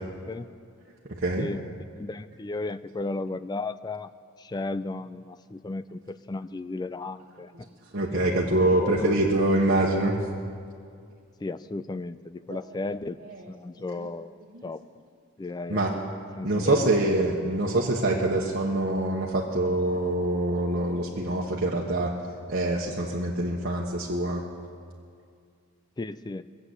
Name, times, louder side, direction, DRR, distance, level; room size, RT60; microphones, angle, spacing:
voice 1, 2.0-4.1 4.4-7.7 8.0-9.1 11.4-13.2 13.5-14.8 15.4-15.9 16.4-17.0 26.0-26.4, left 2 dB, 20° left, 14 dB, 0.3 m, -34 dB
voice 2, 7.9-10.1 12.5-12.6 13.3-13.5 14.0-14.1 14.5-14.6 15.7-15.9 16.4-22.1 22.5-24.4, right 2 dB, 45° right, -4 dB, 1.3 m, -25 dB
21.5 x 7.9 x 8.1 m, 2.2 s
head